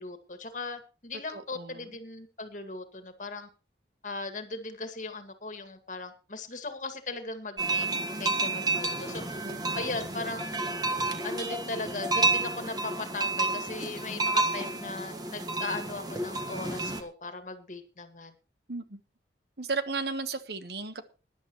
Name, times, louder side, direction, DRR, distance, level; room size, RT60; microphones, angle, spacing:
voice 1, 0.0-3.5 4.0-7.9 8.2-9.5 9.7-10.6 11.2-18.3, left 3 dB, 45° left, 2.0 m, -38 dB
voice 2, 1.3-1.9 9.4-10.1 18.7-19.0 19.6-21.1, right 4 dB, 65° right, 1.3 m, -35 dB
sound 1, 7.6-17.0, right 3 dB, 20° right, 1.5 m, -30 dB
20.5 x 11.0 x 3.1 m
head